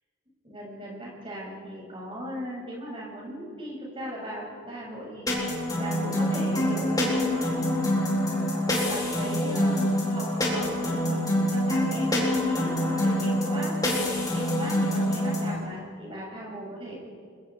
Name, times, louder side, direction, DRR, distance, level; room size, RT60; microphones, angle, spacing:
voice 1, 0.4-5.3 5.8-7.8 8.3-13.8 14.3-17.0, equal, 25° right, -3 dB, 7.1 m, -38 dB
sound 1, 5.3-15.6, left 1 dB, 20° left, 4.3 m, -26 dB
30.0 x 22.5 x 4.9 m, 2.2 s
head